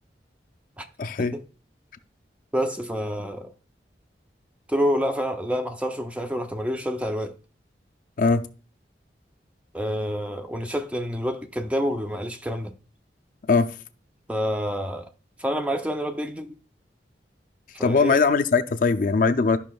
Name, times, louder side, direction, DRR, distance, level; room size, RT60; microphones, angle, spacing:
voice 1, 1.0-1.3 8.2-8.5 13.5-13.8 17.8-19.6, left 4 dB, 50° left, 0.4 m, -21 dB
voice 2, 2.5-3.5 4.7-7.4 9.7-12.7 14.3-15.1 15.4-16.6 17.7-18.2, equal, 10° right, 0.5 m, -28 dB
12.5 x 5.6 x 2.3 m
head